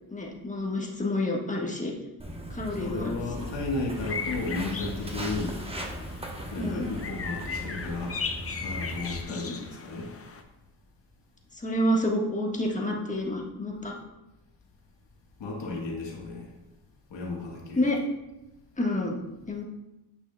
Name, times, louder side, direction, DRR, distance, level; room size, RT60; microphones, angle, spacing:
voice 1, 0.1-1.9 2.5-3.5 6.6-6.9 9.4-9.5 11.5-13.9 17.7-18.0 18.8-19.2 19.5-19.6, left 1 dB, 15° left, -1 dB, 1.3 m, -29 dB
Walk footsteps, 2.2-9.2, equal, 15° right, 1.0 m, -38 dB
voice 2, 2.7-5.6 6.5-8.2 8.6-10.1 15.4-16.5 17.1-17.8, left 3 dB, 70° left, -1 dB, 1.4 m, -34 dB
sound 1, 3.9-10.4, left 5 dB, 30° left, 0.7 m, -38 dB
8.3 x 6.0 x 2.2 m, 0.97 s
cardioid pair, 75°, 45 cm